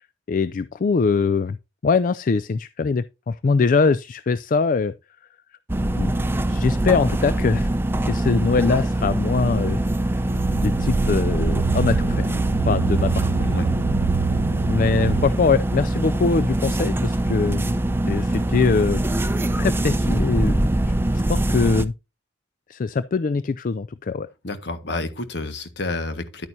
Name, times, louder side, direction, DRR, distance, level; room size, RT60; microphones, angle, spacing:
voice 1, 0.3-1.6 1.8-4.9 5.9-6.1 6.5-7.7 8.0-10.2 10.6-12.4 12.6-13.3 14.6-17.7 18.0-19.0 19.6-20.7 21.1-21.9 22.7-24.3, left 4 dB, 45° left, 0.4 m, -22 dB
sound 1, 5.7-21.9, right 1 dB, 10° right, 0.5 m, -23 dB
sound 2, 10.2-15.3, right 5 dB, 75° right, 0.4 m, -26 dB
voice 2, 13.3-13.7 24.4-26.5, left 2 dB, 65° left, 1.6 m, -29 dB
11.0 x 9.0 x 2.7 m
head